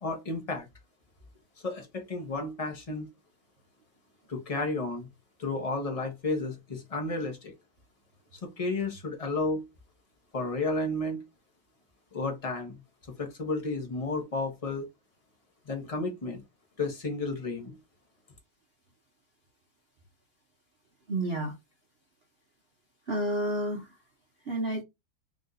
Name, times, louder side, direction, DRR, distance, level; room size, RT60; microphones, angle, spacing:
voice 1, 0.0-0.7 1.6-3.1 4.3-5.1 5.4-7.5 8.4-9.6 10.3-11.2 12.1-12.8 13.2-14.9 15.7-16.4 16.8-17.8, left 2 dB, 30° left, 0.6 m, -32 dB
voice 2, 21.1-21.5 23.1-23.9 24.5-24.8, right 1 dB, 65° right, 0.5 m, -30 dB
3.6 x 2.6 x 3.9 m
omnidirectional pair, 2.2 m